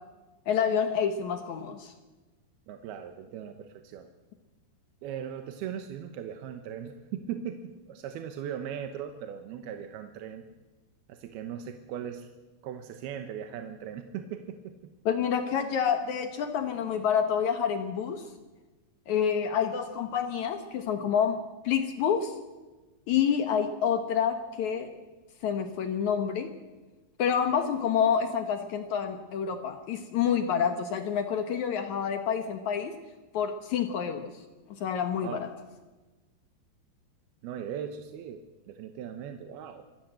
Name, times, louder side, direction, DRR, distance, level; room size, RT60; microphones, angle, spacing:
voice 1, 0.5-1.9 15.0-18.2 19.1-22.3 23.1-24.9 25.4-26.5 27.2-32.9 33.3-34.3 34.8-35.5, left 7 dB, 75° left, 7 dB, 1.7 m, -28 dB
voice 2, 2.7-4.1 5.0-10.5 11.1-12.3 12.6-14.7 35.2-35.5 37.4-38.4 38.7-39.8, right 9 dB, 70° right, 6 dB, 2.7 m, -39 dB
26.0 x 14.0 x 7.7 m, 1.2 s
omnidirectional pair, 5.2 m